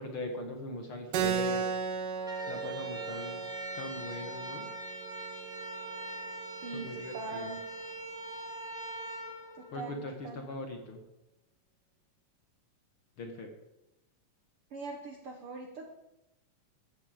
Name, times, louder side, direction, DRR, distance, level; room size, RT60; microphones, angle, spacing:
voice 1, 0.0-1.7 2.5-4.7 6.7-7.5 9.7-11.0 13.2-13.5, left 2 dB, 50° left, 4 dB, 2.0 m, -40 dB
Keyboard (musical), 1.1-6.2, right 7 dB, 80° right, 2.8 m, -36 dB
sound 1, 2.2-10.3, right 2 dB, ahead, 1.3 m, -42 dB
voice 2, 6.6-7.6 9.6-10.4 14.7-15.9, right 3 dB, 55° right, 3 dB, 1.7 m, -42 dB
14.5 x 14.0 x 5.1 m, 0.92 s
omnidirectional pair, 3.8 m